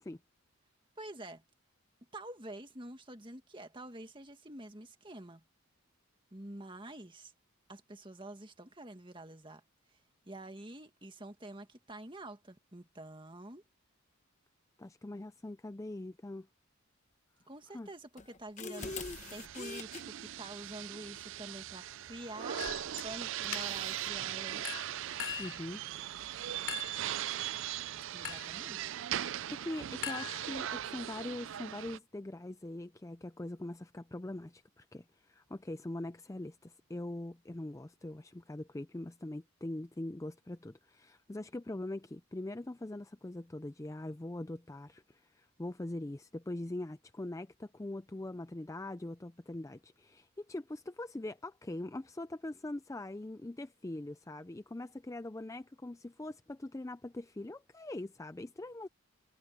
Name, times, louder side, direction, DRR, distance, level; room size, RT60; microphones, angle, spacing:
voice 1, 1.0-1.4 2.1-5.4 6.3-7.3 7.7-9.6 10.3-13.6 17.5-22.7 23.0-24.7 28.1-28.9, right 1 dB, 20° right, 1.9 m, -47 dB
voice 2, 14.8-16.5 17.7-17.9 25.4-25.8 29.5-58.9, left 1 dB, 15° left, 0.4 m, -42 dB
sound 1, 18.2-20.0 22.7-22.9 23.4-24.2, left 4 dB, 35° left, 1.0 m, -44 dB
sound 2, 18.8-32.0, right 11 dB, 60° right, 0.4 m, -39 dB
Chink clink, 22.6-23.1 23.5-24.0 24.6-25.6 26.7-27.1 28.2-28.6 30.0-30.8, left 11 dB, 70° left, 3.3 m, -41 dB
head